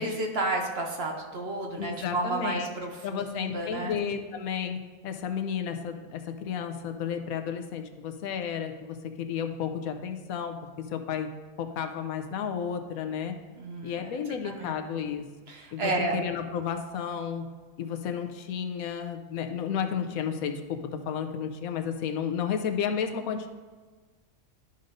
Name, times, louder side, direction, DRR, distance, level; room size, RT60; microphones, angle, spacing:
voice 1, 0.0-4.0 13.6-14.1 14.6-14.7 15.5-16.2, right 2 dB, 50° right, 2 dB, 1.0 m, -31 dB
voice 2, 1.8-2.7 3.0-11.3 11.6-13.4 13.8-15.2 15.7-17.5 17.8-23.5, left 7 dB, 85° left, 6 dB, 1.1 m, -32 dB
12.0 x 5.4 x 2.6 m, 1.4 s
omnidirectional pair, 1.4 m